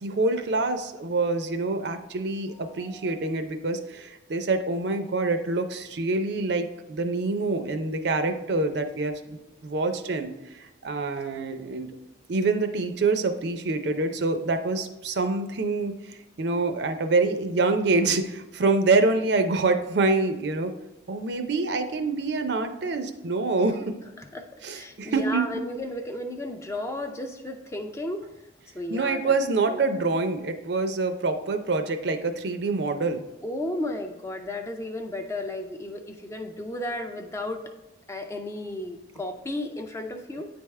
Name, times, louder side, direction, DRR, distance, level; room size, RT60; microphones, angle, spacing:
voice 1, 0.0-11.9 12.3-20.7 21.1-23.9 24.6-25.4 28.9-33.2, right 3 dB, 60° right, 8 dB, 0.5 m, -26 dB
voice 2, 24.7-28.2 28.7-29.3 29.7-29.9 33.4-37.6 38.1-40.5, left 1 dB, 15° left, 4 dB, 0.4 m, -33 dB
9.0 x 3.5 x 3.2 m, 1.0 s
head